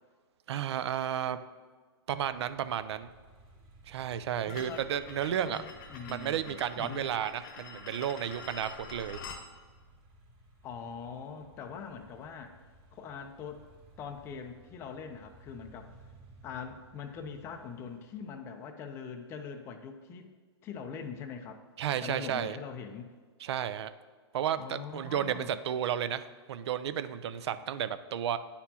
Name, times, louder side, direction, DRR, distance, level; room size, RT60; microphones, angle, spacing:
voice 1, 0.5-1.4 2.1-3.1 3.9-5.6 6.1-9.2 21.8-22.6 23.4-23.9 24.3-28.4, right 9 dB, 70° right, 13 dB, 0.4 m, -32 dB
sound 1, 2.6-18.4, right 1 dB, 30° right, 1.6 m, -58 dB
voice 2, 4.4-4.8 5.3-7.1 10.6-12.5 12.9-13.7 14.0-15.9 16.4-20.3 20.6-21.6 22.0-23.1 24.5-25.6, left 6 dB, 15° left, 5 dB, 0.4 m, -42 dB
sound 2, 4.5-9.4, left 4 dB, 50° left, 0.8 m, -47 dB
10.0 x 4.2 x 2.8 m, 1.5 s
hypercardioid pair, 145°, 15 cm